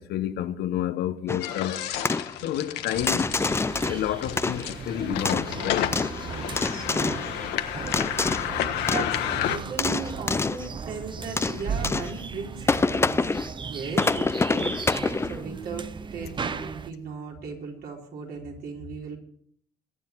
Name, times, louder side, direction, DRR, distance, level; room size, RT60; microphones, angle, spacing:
voice 1, 0.0-1.9 2.4-3.3 3.9-6.0, left 11 dB, 75° left, 1.1 m, -29 dB
sound 1, 1.3-1.6 2.0-2.3 3.1-4.0 4.4-4.9 5.2-6.2 6.6-7.3 7.9-8.6 8.9-9.2 9.6-10.7 11.4-12.2 12.7-13.5 13.9-15.4, left 3 dB, 15° left, 0.5 m, -26 dB
sound 2, 1.4-9.6, left 11 dB, 90° left, 1.3 m, -31 dB
sound 3, 2.9-16.9, right 5 dB, 30° right, 0.8 m, -37 dB
voice 2, 6.2-13.2 13.6-19.2, right 4 dB, 65° right, 4.4 m, -38 dB
22.5 x 9.6 x 4.7 m
cardioid pair, 110°, 17 cm